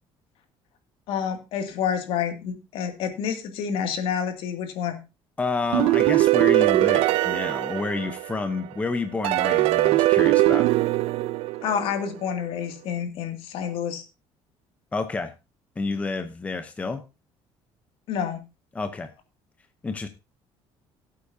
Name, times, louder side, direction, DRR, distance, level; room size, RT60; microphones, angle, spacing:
voice 1, 1.1-5.0 11.6-14.0 18.1-18.4, left 7 dB, 65° left, 5 dB, 2.4 m, -28 dB
voice 2, 5.4-10.7 14.9-15.3 15.8-17.0 18.7-19.1 19.8-20.1, left 3 dB, 15° left, 8 dB, 0.8 m, -29 dB
sound 1, 5.7-8.6 9.2-12.1, right 18 dB, 75° right, 0.5 m, -21 dB
17.0 x 8.5 x 2.7 m, 0.28 s
cardioid pair, 170°, 10 cm